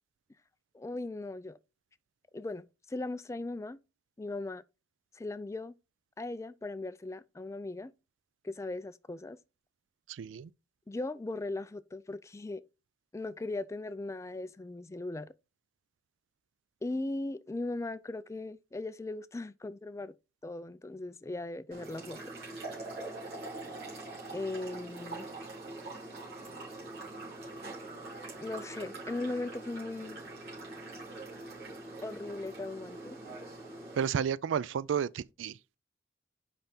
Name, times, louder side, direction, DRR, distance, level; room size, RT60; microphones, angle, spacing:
voice 1, 0.7-1.6 2.3-3.8 4.2-4.6 5.1-5.7 6.2-7.9 8.4-9.4 10.9-12.6 13.1-15.3 16.8-20.1 20.4-22.2 24.3-25.3 28.4-30.3 32.0-33.2, left 2 dB, 15° left, 0.3 m, -38 dB
voice 2, 10.1-10.5 34.0-35.6, right 7 dB, 85° right, 0.3 m, -32 dB
sound 1, 21.7-34.1, right 2 dB, 55° right, 3.1 m, -43 dB
5.6 x 5.1 x 4.3 m
head